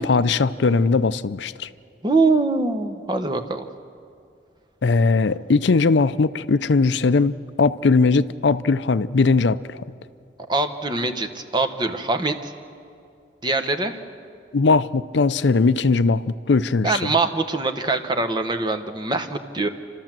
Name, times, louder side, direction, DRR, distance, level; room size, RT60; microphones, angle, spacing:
voice 1, 0.0-1.7 4.8-9.8 14.5-17.0, left 4 dB, 75° left, 15 dB, 0.5 m, -19 dB
voice 2, 2.0-3.7 10.5-12.5 13.4-14.0 16.8-19.7, right 3 dB, 25° right, 7 dB, 1.0 m, -23 dB
29.5 x 13.0 x 7.5 m, 2.4 s
head